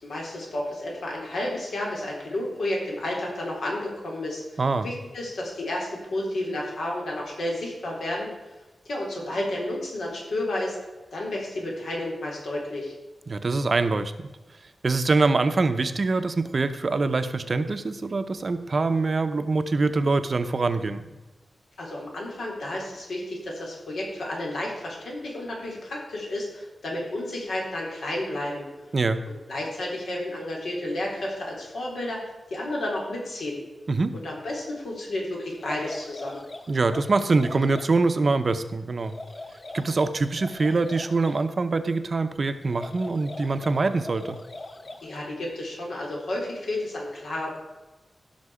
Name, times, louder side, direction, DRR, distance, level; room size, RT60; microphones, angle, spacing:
voice 1, 0.0-8.3 8.9-10.8 11.1-12.9 21.8-28.6 29.5-33.6 34.2-36.4 45.0-47.6, left 1 dB, 80° left, -2 dB, 3.5 m, -31 dB
voice 2, 13.3-14.3 14.8-21.1 28.9-29.2 33.9-34.2 36.7-39.1 39.7-44.4, right 3 dB, 40° right, 9 dB, 0.6 m, -24 dB
sound 1, 35.5-37.9 39.0-41.4 42.6-45.2, left 2 dB, 30° left, 0.7 m, -41 dB
16.0 x 6.0 x 4.9 m, 1.1 s
wide cardioid pair, 165°, 0 cm